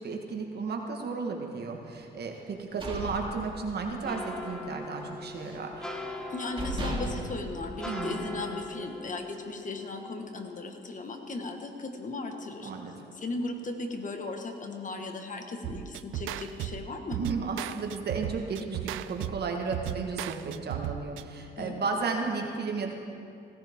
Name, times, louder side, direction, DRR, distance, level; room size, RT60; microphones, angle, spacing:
voice 1, 0.0-5.8 7.9-8.4 12.6-12.9 17.1-22.9, right 4 dB, 55° right, 2 dB, 1.5 m, -34 dB
sound 1, 2.5-4.0 4.4-4.6 5.0-5.7 6.2-6.3 6.6-8.4, right 1 dB, 25° right, 2.4 m, -36 dB
sound 2, 4.1-13.3 13.7-14.7 15.0-15.4 15.7-15.8, left 2 dB, 5° left, 1.2 m, -42 dB
voice 2, 6.3-12.7 13.1-17.2 21.6-21.8, left 3 dB, 40° left, 4 dB, 1.6 m, -37 dB
sound 3, 15.6-21.3, right 13 dB, 90° right, 0.4 m, -36 dB
16.5 x 15.0 x 3.7 m, 2.6 s
cardioid pair, 90°, 20 cm